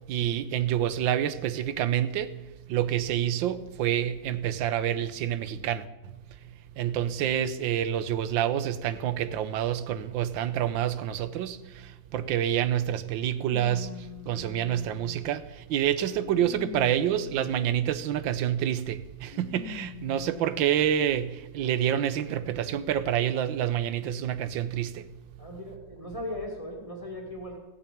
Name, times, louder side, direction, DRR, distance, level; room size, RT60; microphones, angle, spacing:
voice 1, 0.1-2.3 2.7-5.9 6.8-13.9 14.3-25.1, right 10 dB, 90° right, 1.5 m, -28 dB
sound 1, 12.3-12.4 13.5-15.5 16.1-18.1 19.3-20.7 21.4-21.5 22.7-22.8, left 11 dB, 70° left, 1.0 m, -43 dB
voice 2, 25.4-27.6, left 1 dB, 20° left, 2.4 m, -38 dB
15.0 x 7.2 x 8.6 m
omnidirectional pair, 2.0 m